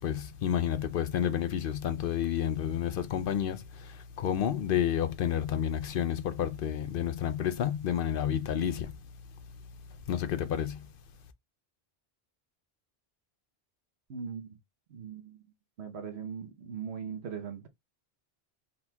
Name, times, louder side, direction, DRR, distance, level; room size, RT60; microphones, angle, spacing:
voice 1, 0.0-8.9 10.1-10.9, left 9 dB, 65° left, 0.7 m, -30 dB
voice 2, 14.1-14.6 14.9-15.4 15.8-17.7, right 7 dB, 85° right, 1.1 m, -40 dB
4.3 x 4.0 x 2.3 m
omnidirectional pair, 1.1 m